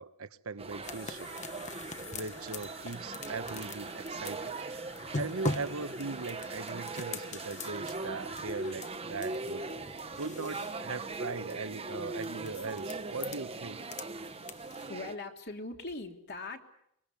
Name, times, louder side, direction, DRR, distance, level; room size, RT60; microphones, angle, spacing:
voice 1, 0.0-1.3 2.1-4.6 5.1-9.7 10.2-13.8, right 4 dB, 70° right, 1.1 m, -39 dB
sound 1, 0.6-15.1, right 3 dB, 25° right, 1.1 m, -40 dB
sound 2, 0.8-14.9, left 3 dB, 35° left, 1.3 m, -43 dB
sound 3, 0.8-8.7, left 2 dB, 15° left, 2.3 m, -54 dB
voice 2, 14.9-16.6, left 2 dB, 50° left, 3.0 m, -40 dB
24.5 x 23.0 x 8.4 m
head